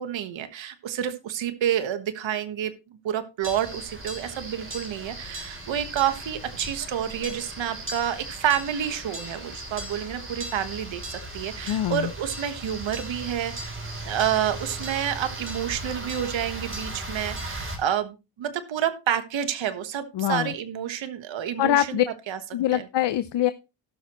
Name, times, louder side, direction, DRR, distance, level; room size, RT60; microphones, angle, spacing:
voice 1, 0.0-22.0 22.3-22.4 22.7-22.9, right 10 dB, 75° right, 9 dB, 1.4 m, -29 dB
sound 1, 3.4-17.8, right 1 dB, 25° right, 3.5 m, -37 dB
voice 2, 11.7-12.1 20.1-20.5 21.6-22.0 22.5-23.5, left 13 dB, 65° left, 13 dB, 0.7 m, -23 dB
17.5 x 6.2 x 3.0 m, 0.28 s
cardioid pair, 90°, 46 cm